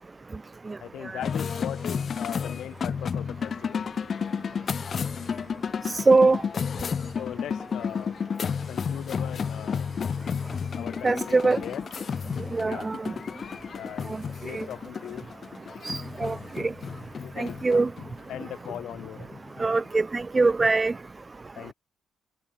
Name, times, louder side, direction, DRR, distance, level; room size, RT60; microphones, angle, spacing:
voice 1, 0.8-3.8 7.2-8.2 8.7-9.9 10.8-11.9 12.6-12.9 13.7-14.1 14.4-15.3 17.2-17.8 18.3-19.3 21.6-21.7, left 11 dB, 75° left, 6.9 m, -39 dB
sound 1, 1.2-19.9, left 6 dB, 45° left, 5.6 m, -32 dB
voice 2, 5.9-6.4 11.0-11.6 12.5-13.0 14.5-14.6 15.8-16.7 17.4-17.9 19.6-20.9, right 3 dB, 25° right, 0.7 m, -22 dB
cardioid pair, 90°, 0 cm